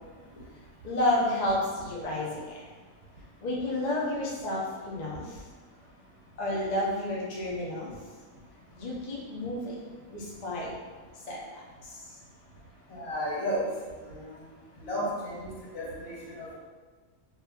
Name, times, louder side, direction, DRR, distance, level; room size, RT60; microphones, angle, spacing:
voice 1, 0.8-2.6 3.4-5.4 6.4-7.9 8.8-9.8 10.1-10.7 11.3-11.4 11.9-12.1, left 1 dB, 45° left, -5 dB, 0.6 m, -30 dB
voice 2, 12.9-13.6 14.8-15.3 15.7-16.5, equal, 70° left, -8 dB, 1.5 m, -32 dB
2.8 x 2.7 x 3.4 m, 1.4 s
omnidirectional pair, 1.5 m